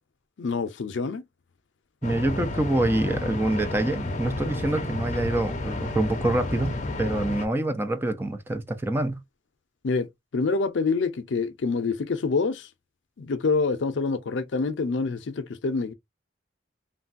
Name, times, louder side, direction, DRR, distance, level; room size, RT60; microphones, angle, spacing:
voice 1, 0.4-1.2 9.8-12.7 13.2-15.9, left 4 dB, 85° left, 0.5 m, -26 dB
sound 1, 2.0-7.5, left 2 dB, 40° left, 0.6 m, -31 dB
voice 2, 2.0-9.2, right 1 dB, 10° right, 0.4 m, -26 dB
3.1 x 2.2 x 2.5 m
head